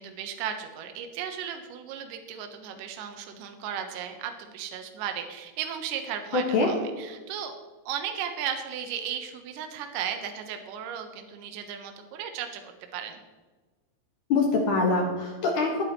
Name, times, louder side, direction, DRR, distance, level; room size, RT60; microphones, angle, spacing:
voice 1, 0.0-7.6 7.9-13.2, right 8 dB, 70° right, 5 dB, 2.2 m, -35 dB
voice 2, 6.3-6.7 14.3-15.8, left 3 dB, 55° left, 0 dB, 2.6 m, -24 dB
20.5 x 8.6 x 3.1 m, 1.3 s
omnidirectional pair, 5.1 m